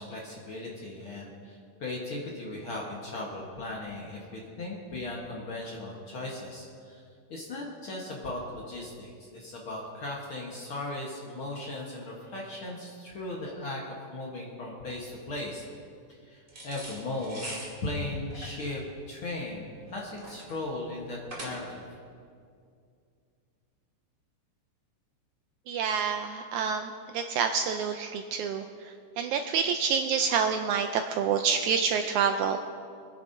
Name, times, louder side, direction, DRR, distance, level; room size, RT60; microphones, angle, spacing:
voice 1, 0.0-7.0 7.3-15.6 16.2-17.5 17.8-18.8 19.1-21.8, left 2 dB, 55° left, -3 dB, 1.6 m, -37 dB
sound 1, 16.5-21.9, right 1 dB, 20° right, 2.1 m, -43 dB
voice 2, 25.7-32.6, right 6 dB, 80° right, 6 dB, 1.7 m, -28 dB
25.5 x 10.0 x 2.7 m, 2.3 s
omnidirectional pair, 3.8 m